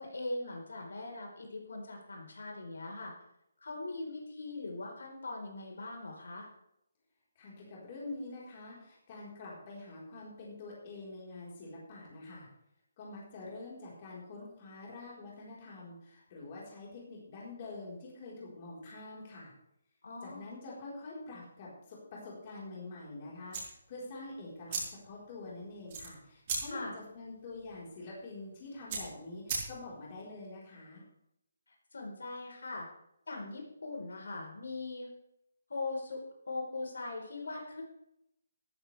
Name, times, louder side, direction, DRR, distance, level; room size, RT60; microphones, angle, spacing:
voice 1, 0.0-3.1 3.6-6.5 20.0-20.4 26.7-26.9 31.9-32.9 33.3-35.1 35.7-36.2 36.5-37.8, left 2 dB, 80° left, 0 dB, 4.5 m, -40 dB
voice 2, 7.3-12.5 13.0-19.5 20.2-31.0, left 2 dB, 25° left, -5 dB, 4.5 m, -46 dB
sound 1, 23.4-30.1, right 4 dB, 25° right, 4.3 m, -41 dB
14.0 x 13.5 x 3.5 m, 0.79 s
hypercardioid pair, 175°, 0 cm